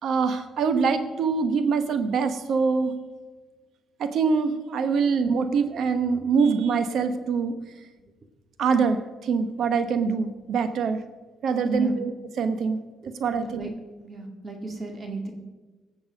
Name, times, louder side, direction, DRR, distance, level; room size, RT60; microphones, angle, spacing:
voice 1, 0.0-2.9 4.0-7.5 8.6-11.0 11.4-12.8 13.2-13.7, right 5 dB, 70° right, 10 dB, 1.1 m, -24 dB
voice 2, 11.6-12.0 13.0-13.7 14.0-15.3, right 2 dB, 35° right, 3 dB, 2.1 m, -34 dB
18.0 x 7.1 x 5.3 m, 1.3 s
cardioid pair, 90°, 0 cm